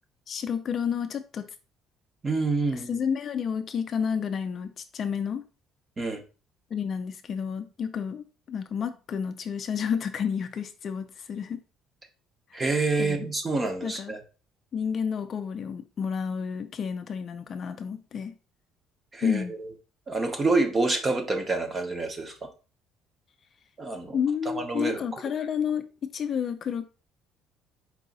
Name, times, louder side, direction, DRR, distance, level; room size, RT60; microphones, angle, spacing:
voice 1, 0.3-1.5 2.7-5.4 6.7-11.6 12.5-12.6 13.0-13.3 13.8-14.1 14.7-18.3 19.2-19.5 24.1-25.9 26.1-26.8, left 7 dB, 35° left, 0.4 m, -30 dB
voice 2, 2.2-3.0 6.0-6.2 12.5-14.2 19.1-19.7 20.1-22.5 23.8-24.2 24.5-25.0, right 3 dB, 20° right, 0.7 m, -27 dB
4.7 x 2.7 x 4.0 m
cardioid pair, 150°, 0 cm